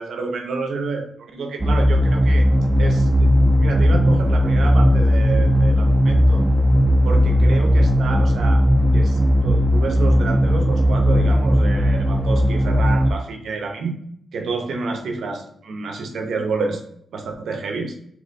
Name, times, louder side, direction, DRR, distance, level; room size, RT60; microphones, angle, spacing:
voice 1, 0.0-2.5 2.8-6.5 7.0-8.6 8.9-14.0 14.3-16.8 17.1-18.0, right 4 dB, 75° right, 4 dB, 0.7 m, -29 dB
sound 1, 1.6-13.1, equal, 20° right, 0.4 m, -16 dB
3.3 x 2.9 x 4.0 m, 0.69 s
cardioid pair, 110°, 0 cm